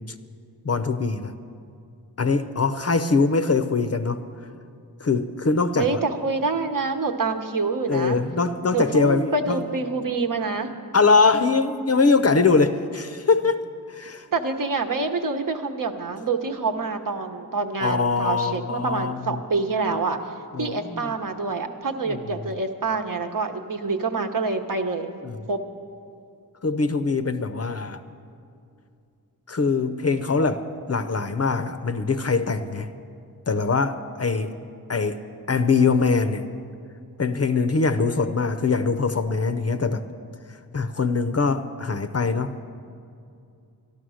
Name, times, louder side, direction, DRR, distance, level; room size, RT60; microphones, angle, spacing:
voice 1, 0.6-1.3 2.2-4.2 5.0-5.9 7.9-9.6 10.9-13.6 13.9-14.3 17.8-19.4 20.5-21.1 25.2-25.4 26.6-28.0 29.5-32.9 33.5-34.5 34.9-35.2 35.5-36.4 37.2-40.0 40.7-42.6, left 4 dB, 40° left, 10 dB, 0.6 m, -22 dB
voice 2, 5.8-8.2 8.7-10.7 14.3-20.2 20.6-25.1 25.5-25.6, right 4 dB, 55° right, 5 dB, 1.0 m, -26 dB
13.0 x 12.0 x 6.3 m, 2.5 s
wide cardioid pair, 85°, 39 cm